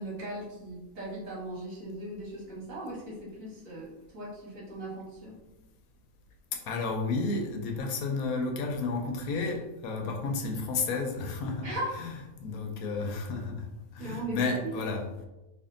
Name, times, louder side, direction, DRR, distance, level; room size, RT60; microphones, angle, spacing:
voice 1, 0.0-3.9 4.1-5.3 11.6-11.9 14.0-14.7, right 1 dB, 60° right, -6 dB, 1.7 m, -38 dB
voice 2, 6.7-12.1 12.4-13.7 13.9-15.0, left 3 dB, 75° left, 2 dB, 1.1 m, -32 dB
3.5 x 2.4 x 3.7 m, 1.0 s
omnidirectional pair, 1.6 m